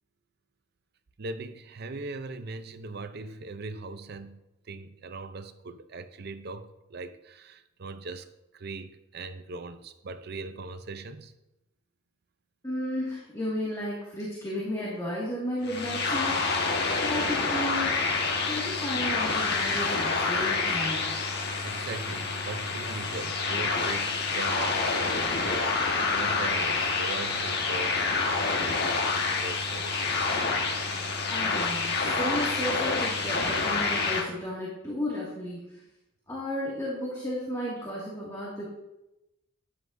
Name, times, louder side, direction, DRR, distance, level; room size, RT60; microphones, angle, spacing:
voice 1, 1.2-4.4 4.7-11.3 21.6-30.3, right 3 dB, 50° right, 10 dB, 0.6 m, -40 dB
voice 2, 12.6-18.0 18.5-21.1 31.3-35.6 36.3-38.6, equal, 15° left, -6 dB, 2.1 m, -33 dB
sound 1, 15.6-34.2, left 4 dB, 55° left, 1.5 m, -28 dB
12.5 x 9.8 x 2.6 m, 0.93 s
head